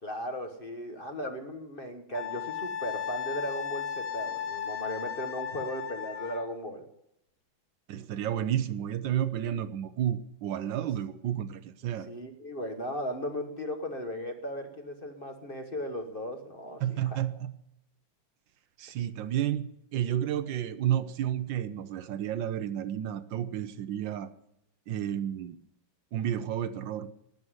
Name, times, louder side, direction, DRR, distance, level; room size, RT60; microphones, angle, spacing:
voice 1, 0.0-6.9 12.1-17.2, equal, 30° left, 5 dB, 1.2 m, -37 dB
Wind instrument woodwind instrument, 2.1-6.5, left 8 dB, 60° left, 1.7 m, -35 dB
voice 2, 7.9-12.1 16.8-17.5 18.8-24.3 24.9-25.6 26.1-27.1, right 10 dB, 75° right, 13 dB, 1.4 m, -31 dB
12.5 x 9.6 x 9.4 m, 0.82 s
omnidirectional pair, 2.1 m